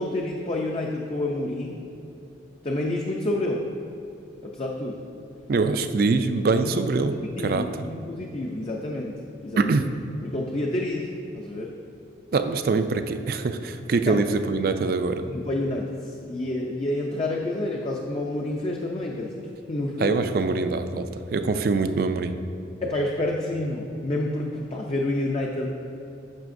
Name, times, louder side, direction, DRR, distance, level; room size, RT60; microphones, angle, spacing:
voice 1, 0.0-1.8 2.6-3.7 4.4-5.0 6.6-6.7 7.4-9.1 9.4-9.8 10.2-11.7 14.1-14.2 15.3-20.2 22.8-25.7, left 1 dB, 30° left, -1 dB, 0.5 m, -29 dB
voice 2, 5.5-7.7 9.6-9.9 12.3-15.2 20.0-22.3, right 3 dB, 50° right, 9 dB, 0.4 m, -24 dB
10.5 x 6.5 x 2.6 m, 2.8 s
head